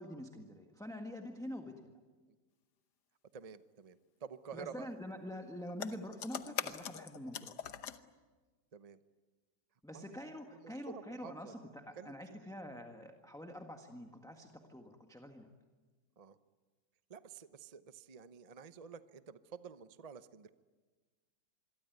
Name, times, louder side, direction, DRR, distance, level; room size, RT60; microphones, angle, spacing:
voice 1, 0.0-1.9 4.5-7.5 9.8-15.5, equal, ahead, 3 dB, 1.5 m, -46 dB
voice 2, 3.3-4.9 6.4-6.7 8.7-9.0 9.9-10.0 10.5-11.5 12.0-12.5 16.2-16.4 17.1-20.5, right 6 dB, 35° right, 12 dB, 0.6 m, -50 dB
sound 1, 5.7-8.0, left 9 dB, 70° left, 1.6 m, -42 dB
26.5 x 23.0 x 9.4 m, 1.3 s
omnidirectional pair, 1.9 m